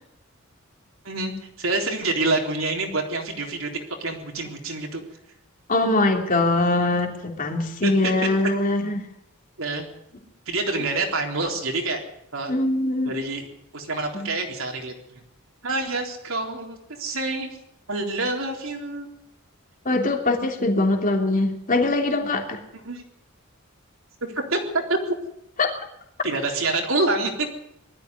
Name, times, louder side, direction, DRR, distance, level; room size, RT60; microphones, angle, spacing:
voice 1, 1.0-3.7 4.0-5.0 7.8-8.1 9.6-9.9 10.5-12.0 12.3-12.5 13.1-13.5 13.7-15.2 15.6-17.6 17.9-19.1 22.7-23.0 24.3-25.0 26.2-27.5, right 2 dB, 65° right, 1 dB, 3.8 m, -27 dB
voice 2, 5.7-9.1 12.5-13.2 14.1-14.3 19.8-22.6 25.6-25.7, left 2 dB, 40° left, 2 dB, 3.0 m, -22 dB
20.5 x 13.5 x 9.7 m, 0.77 s
head